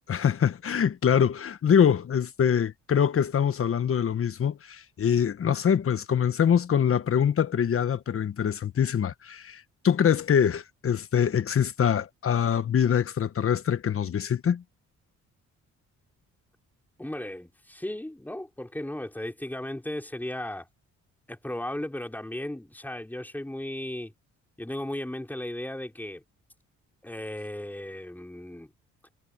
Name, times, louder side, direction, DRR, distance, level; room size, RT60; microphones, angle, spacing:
voice 1, 0.1-14.6, left 8 dB, 45° left, 1.3 m, -24 dB
voice 2, 17.0-20.7 21.3-24.1 24.6-26.2 27.0-28.7, left 1 dB, 5° left, 4.7 m, -35 dB
cardioid pair, 90°, 30 cm